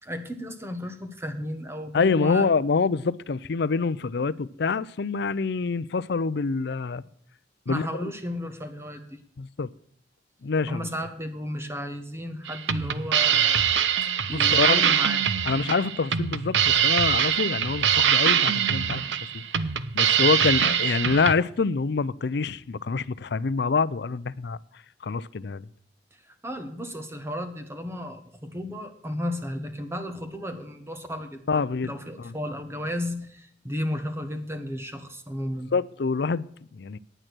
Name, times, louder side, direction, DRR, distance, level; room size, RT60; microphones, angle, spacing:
voice 1, 0.0-2.5 7.7-9.2 10.7-13.7 14.0-15.3 26.1-35.7, equal, 15° right, 1.3 m, -34 dB
voice 2, 1.9-7.0 7.7-8.1 9.4-9.7 10.4-10.8 14.3-14.8 15.5-19.0 19.3-19.4 19.9-24.6 25.0-25.7 31.5-31.9 32.2-32.3 35.7-37.0, left 4 dB, 65° left, 0.5 m, -26 dB
sound 1, 12.4-21.3, right 8 dB, 85° right, 0.7 m, -23 dB
10.0 x 9.0 x 6.1 m
head